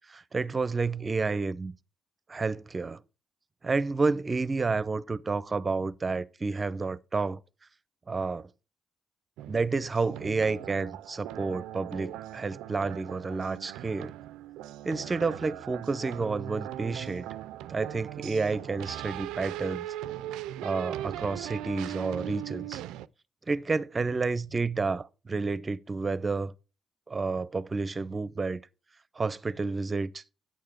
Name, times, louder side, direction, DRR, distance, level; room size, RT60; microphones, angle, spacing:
voice 1, 0.1-1.7 2.3-3.0 3.6-7.4 8.1-8.5 9.5-14.1 14.8-17.3 17.7-19.9 20.6-22.8 23.5-26.5 27.1-28.6 29.2-30.2, right 4 dB, 35° right, 0.7 m, -30 dB
sound 1, 9.4-23.1, right 13 dB, 90° right, 0.3 m, -39 dB
9.3 x 6.7 x 4.6 m
supercardioid pair, 55°, 0 cm